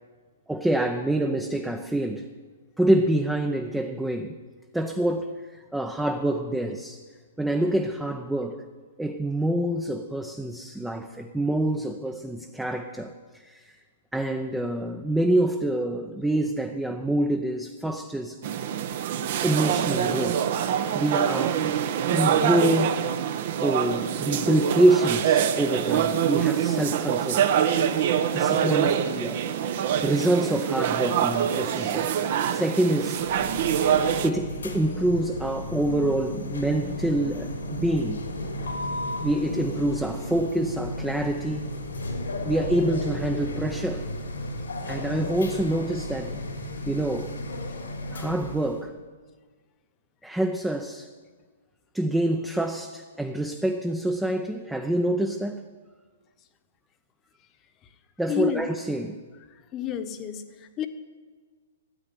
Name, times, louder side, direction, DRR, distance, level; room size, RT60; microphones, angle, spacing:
voice 1, 0.5-2.3 2.8-4.3 4.7-7.0 7.4-8.6 9.0-13.1 13.4-13.7 14.1-18.4 19.4-20.5 20.9-21.7 22.1-23.0 23.6-27.5 27.9-28.0 28.3-29.5 30.0-32.2 32.5-33.2 34.2-38.2 39.2-41.7 42.5-44.1 44.9-46.4 46.9-47.4 48.1-48.9 50.2-51.1 51.9-55.7 58.2-59.2, right 1 dB, 5° right, 4 dB, 0.7 m, -26 dB
sound 1, 18.4-34.3, right 9 dB, 55° right, 1.0 m, -25 dB
sound 2, 33.2-48.8, left 1 dB, 85° left, 3.4 m, -34 dB
voice 2, 58.3-58.7 59.5-60.9, left 8 dB, 30° left, 9 dB, 1.2 m, -31 dB
13.5 x 8.9 x 9.6 m, 1.5 s
hypercardioid pair, 125°, 0 cm